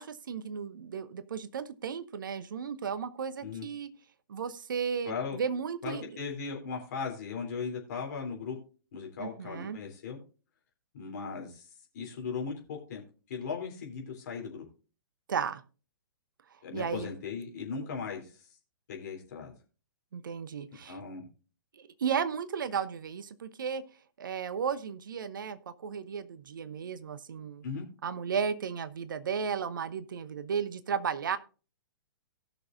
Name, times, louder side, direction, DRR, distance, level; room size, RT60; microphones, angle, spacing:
voice 1, 0.0-3.9 4.3-6.1 9.2-9.8 15.3-15.6 16.7-17.1 20.1-21.0 21.7-23.8 24.2-27.6 28.0-31.4, right 7 dB, 60° right, 0.9 m, -34 dB
voice 2, 5.0-5.4 5.8-8.6 8.9-10.2 10.9-11.7 11.9-13.0 13.3-14.6 16.6-18.3 18.9-19.5 20.9-21.3 27.6-27.8, left 5 dB, 50° left, 3.2 m, -37 dB
18.0 x 6.4 x 2.6 m
figure-of-eight pair, 115°, 12 cm